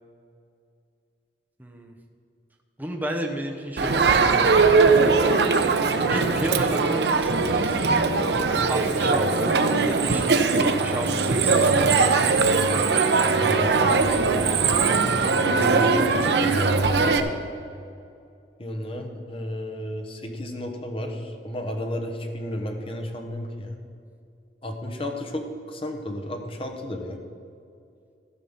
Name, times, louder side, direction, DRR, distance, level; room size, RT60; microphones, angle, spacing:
voice 1, 1.6-1.9 2.8-4.5 6.0-7.8 8.7-12.1, right 1 dB, 10° right, 1 dB, 0.8 m, -32 dB
Crowd, 3.8-17.2, right 4 dB, 70° right, 0.7 m, -20 dB
voice 2, 13.3-14.1 15.4-17.2 18.6-23.8 24.6-27.2, left 1 dB, 30° left, 4 dB, 1.1 m, -32 dB
14.5 x 5.6 x 5.6 m, 2.5 s
head